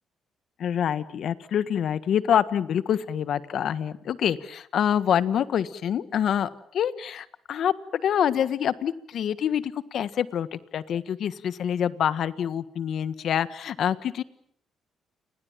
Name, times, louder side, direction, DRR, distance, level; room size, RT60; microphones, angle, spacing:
voice 1, 0.6-14.2, left 9 dB, 65° left, 15 dB, 1.5 m, -26 dB
29.5 x 21.0 x 7.5 m, 0.65 s
cardioid pair, 90°, 0 cm